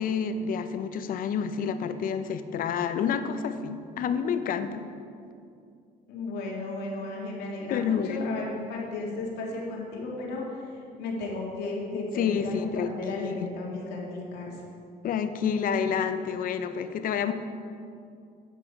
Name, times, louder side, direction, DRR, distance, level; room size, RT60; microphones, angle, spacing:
voice 1, 0.0-4.9 7.7-8.4 11.9-13.5 15.0-17.3, left 7 dB, 55° left, 10 dB, 0.6 m, -29 dB
voice 2, 6.1-14.6, left 3 dB, 80° left, -2 dB, 1.8 m, -34 dB
9.1 x 5.9 x 4.7 m, 2.4 s
cardioid pair, 110°, 17 cm